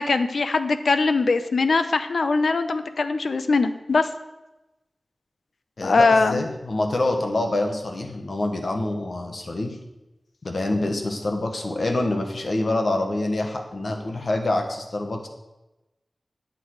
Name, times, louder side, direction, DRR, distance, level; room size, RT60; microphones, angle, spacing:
voice 1, 0.0-4.1 5.8-6.4, left 3 dB, 85° left, 10 dB, 0.6 m, -21 dB
voice 2, 5.8-9.8 10.4-15.3, left 2 dB, 65° left, 3 dB, 1.4 m, -26 dB
10.0 x 6.8 x 4.9 m, 1.0 s
wide cardioid pair, 70°, 0 cm